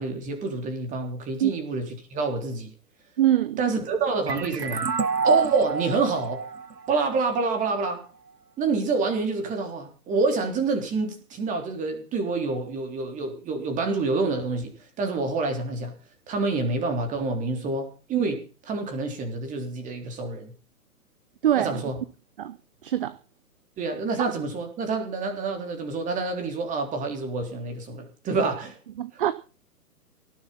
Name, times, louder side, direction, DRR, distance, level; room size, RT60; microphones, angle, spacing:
voice 1, 0.0-1.9 2.1-2.7 3.6-4.9 5.2-6.4 6.9-8.1 8.6-15.9 16.3-20.5 21.6-22.0 23.8-28.8, right 3 dB, 15° right, 3.6 m, -27 dB
voice 2, 3.2-3.6 21.4-21.8 22.4-22.6 22.8-23.2 29.0-29.3, right 12 dB, 35° right, 0.9 m, -23 dB
sound 1, 4.3-7.7, right 5 dB, 90° right, 0.8 m, -27 dB
18.0 x 11.5 x 5.6 m
figure-of-eight pair, 125°, 47 cm